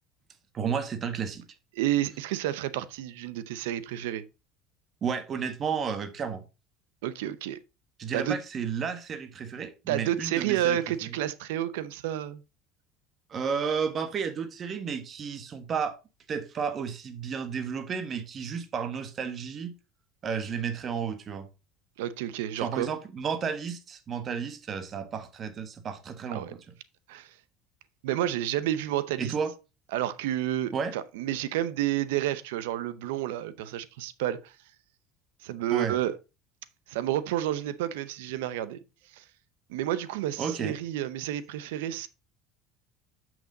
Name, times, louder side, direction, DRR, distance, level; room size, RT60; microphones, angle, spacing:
voice 1, 0.5-1.4 5.0-6.4 8.0-10.8 13.3-16.0 16.3-19.7 20.2-21.5 22.6-26.6 29.2-29.5 30.7-30.9 35.7-35.9 40.4-40.7, right 6 dB, 35° right, 1.2 m, -32 dB
voice 2, 1.7-4.2 7.0-7.6 8.1-8.4 9.9-12.4 22.0-22.9 26.3-26.5 27.1-27.3 28.0-29.3 29.9-34.5 35.4-36.1 36.9-38.8 39.1-39.2 39.7-42.1, right 12 dB, 90° right, 0.6 m, -30 dB
7.1 x 6.0 x 3.9 m
supercardioid pair, 115°, 0 cm